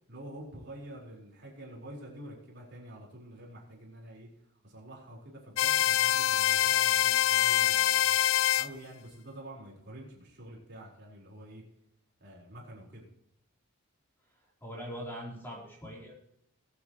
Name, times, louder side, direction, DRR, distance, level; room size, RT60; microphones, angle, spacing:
voice 1, 0.1-4.3 4.6-8.2 8.6-11.6 12.2-13.0, right 1 dB, 50° right, -3 dB, 4.7 m, -47 dB
sound 1, 5.6-8.7, left 11 dB, 65° left, 0.4 m, -25 dB
voice 2, 14.6-16.1, equal, 10° left, -4 dB, 3.9 m, -41 dB
21.5 x 8.4 x 3.2 m, 0.72 s
head